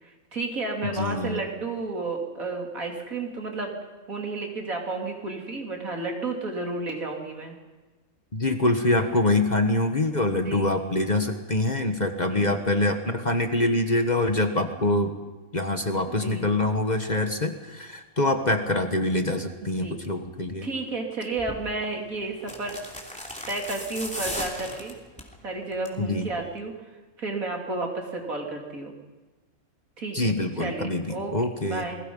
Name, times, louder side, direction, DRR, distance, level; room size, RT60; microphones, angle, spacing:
voice 1, 0.0-3.8 4.1-7.6 10.4-10.7 12.3-12.5 16.1-16.5 19.6-20.0 20.6-22.8 23.1-25.0 25.4-26.8 27.2-29.0 30.0-30.3 30.6-31.3 31.6-32.0, right 3 dB, 70° right, 1 dB, 3.6 m, -32 dB
voice 2, 0.9-1.4 8.3-15.1 15.5-20.7 26.0-26.3 30.1-31.9, left 2 dB, 30° left, 6 dB, 1.5 m, -25 dB
sound 1, 21.4-21.6 22.4-25.3 25.7-26.1 26.3-26.4, left 1 dB, 5° left, 3.0 m, -36 dB
29.0 x 21.0 x 5.5 m, 1.2 s
omnidirectional pair, 1.5 m